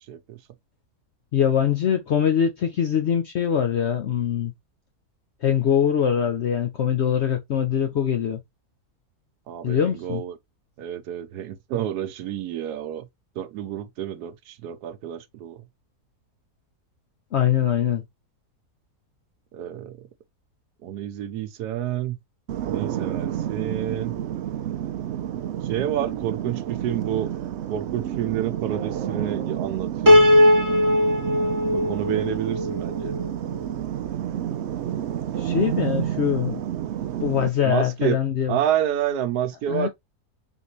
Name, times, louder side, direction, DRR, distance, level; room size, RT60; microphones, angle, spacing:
voice 1, 0.1-0.4 9.5-10.4 10.8-13.1 13.4-15.6 19.5-20.1 20.8-22.2 22.7-24.1 25.6-27.3 27.7-30.2 31.7-33.2 37.6-38.2 38.5-39.9, right 10 dB, 90° right, 1.2 m, -29 dB
voice 2, 1.3-4.5 5.4-8.4 9.6-10.2 17.3-18.0 35.4-36.6 37.2-38.5 39.7-39.9, left 9 dB, 65° left, 0.7 m, -23 dB
sound 1, 22.5-37.5, right 10 dB, 70° right, 0.6 m, -30 dB
Piano, 30.1-33.3, left 1 dB, 20° right, 0.5 m, -18 dB
3.9 x 3.6 x 3.0 m
omnidirectional pair, 1.7 m